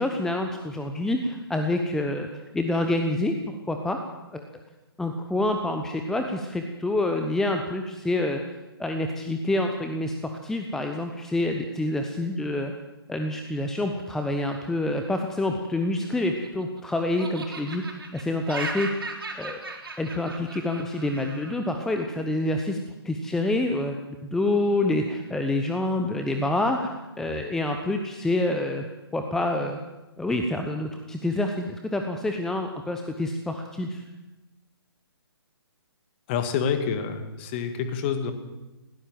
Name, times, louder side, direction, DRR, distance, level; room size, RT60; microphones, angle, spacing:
voice 1, 0.0-2.3 2.5-4.0 4.3-4.4 5.0-8.4 8.8-12.7 13.1-19.1 19.4-19.6 20.0-22.8 23.0-24.0 24.2-28.9 29.1-29.8 30.2-34.0, left 2 dB, 5° left, 5 dB, 1.0 m, -27 dB
Laughter, 16.0-16.8 17.2-21.5, right 3 dB, 60° right, 4.7 m, -37 dB
voice 2, 36.3-38.3, left 7 dB, 25° left, 8 dB, 2.1 m, -27 dB
20.5 x 17.0 x 7.6 m, 1.0 s
figure-of-eight pair, 135°, 13 cm